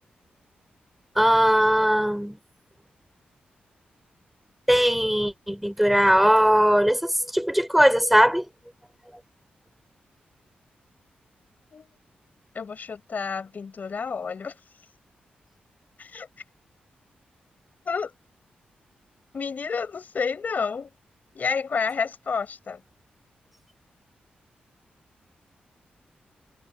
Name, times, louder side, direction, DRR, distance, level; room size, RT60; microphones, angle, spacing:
voice 1, 1.2-2.4 4.7-8.5, equal, 5° right, 3.7 m, -20 dB
voice 2, 12.5-14.6 16.0-16.3 17.9-18.1 19.3-20.9 21.3-22.8, left 5 dB, 55° left, 7.2 m, -30 dB
cardioid pair, 70°, 3 cm